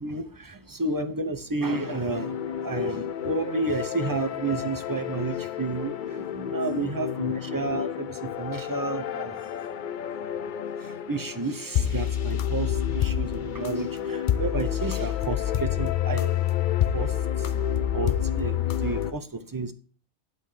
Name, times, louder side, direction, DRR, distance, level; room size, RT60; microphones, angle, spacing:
voice 1, 0.0-9.8 10.1-16.6 16.9-19.7, right 3 dB, 20° right, 0.6 m, -32 dB
sound 1, 1.6-19.1, left 10 dB, 60° left, 0.6 m, -29 dB
11.0 x 3.9 x 6.5 m
omnidirectional pair, 1.2 m